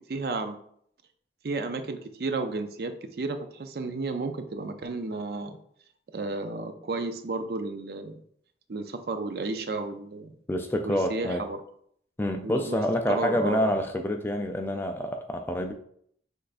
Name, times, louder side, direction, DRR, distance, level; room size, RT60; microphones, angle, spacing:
voice 1, 0.1-0.6 1.4-5.6 6.1-8.2 8.7-10.3 10.8-11.6 12.4-12.8 13.1-13.7, right 3 dB, 60° right, 8 dB, 0.5 m, -32 dB
voice 2, 10.5-11.4 12.2-15.7, equal, 10° left, 5 dB, 0.3 m, -27 dB
6.3 x 3.2 x 2.5 m, 0.65 s
head